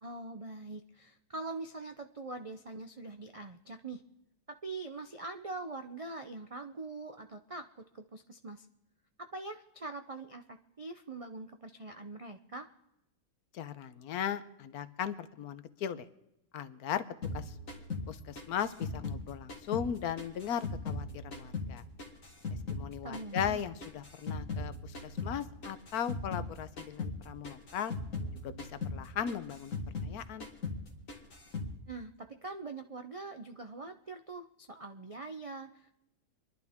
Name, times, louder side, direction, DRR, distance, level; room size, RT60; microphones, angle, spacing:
voice 1, 0.0-4.0 4.6-8.7 9.2-12.7 23.0-23.7 31.9-35.9, right 3 dB, 60° right, 7 dB, 0.3 m, -43 dB
voice 2, 13.5-16.1 16.5-17.1 17.3-17.5 18.1-21.8 22.7-27.9 28.4-29.7 30.0-30.5, left 8 dB, 80° left, 13 dB, 1.3 m, -37 dB
sound 1, 17.2-19.9 20.2-22.9 23.1-26.5 26.8-27.2 27.4-30.2 30.4-30.8 31.1-31.7, left 3 dB, 60° left, 2.2 m, -39 dB
27.0 x 11.5 x 3.5 m, 0.87 s
omnidirectional pair, 1.6 m